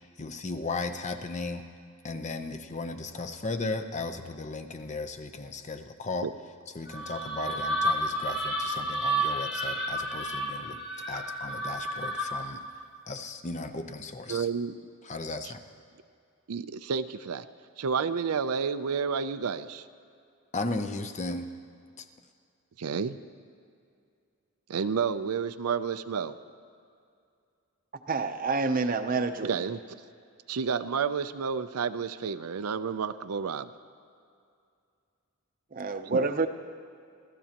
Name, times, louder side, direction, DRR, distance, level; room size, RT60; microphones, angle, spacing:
voice 1, 0.0-1.6 2.0-6.3 6.7-10.8 11.1-12.6 13.1-14.5 15.0-15.6 20.5-21.5 22.0-22.1, left 3 dB, 30° left, 7 dB, 0.7 m, -36 dB
sound 1, 6.9-12.6, right 1 dB, 50° left, 2.2 m, -31 dB
voice 2, 14.3-14.7 16.5-17.4 17.8-19.9 22.8-23.2 24.7-26.3 29.4-30.0 30.5-33.7 36.1-36.3, right 6 dB, 85° right, 11 dB, 0.5 m, -30 dB
voice 3, 28.1-29.5 35.7-36.5, right 3 dB, 40° right, 8 dB, 0.7 m, -28 dB
27.5 x 14.0 x 2.9 m, 2.4 s
head